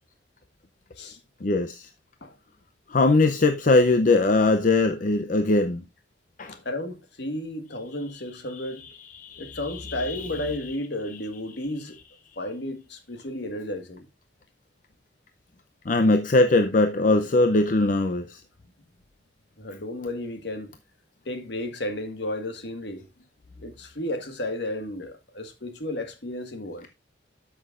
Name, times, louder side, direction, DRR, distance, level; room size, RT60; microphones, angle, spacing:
voice 1, 1.4-1.9 2.9-5.8 6.4-6.6 9.1-10.4 15.9-18.4, left 2 dB, 45° left, 0.6 m, -21 dB
voice 2, 6.5-8.8 9.4-12.0 12.4-14.1 19.6-20.7 21.2-23.1 23.6-26.9, left 1 dB, 65° left, 1.5 m, -33 dB
12.5 x 6.1 x 2.4 m
head